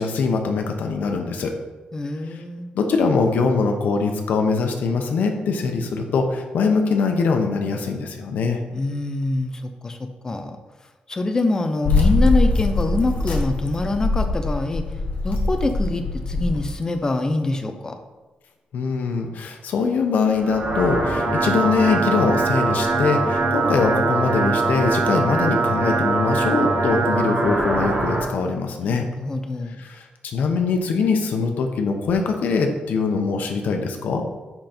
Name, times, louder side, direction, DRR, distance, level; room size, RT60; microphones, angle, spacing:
voice 1, 0.0-1.5 2.3-2.4 2.7-8.6 18.7-29.1 29.8-34.2, left 4 dB, 90° left, 4 dB, 1.1 m, -22 dB
voice 2, 1.9-2.7 8.7-10.6 11.1-14.8 15.2-18.0 28.8-29.9, left 2 dB, 25° left, 6 dB, 0.7 m, -25 dB
sound 1, 11.8-16.7, left 2 dB, 70° left, 1.6 m, -22 dB
sound 2, 20.3-28.3, right 3 dB, 60° right, 2.2 m, -22 dB
10.5 x 3.9 x 4.5 m, 1.2 s
wide cardioid pair, 155°, 3 cm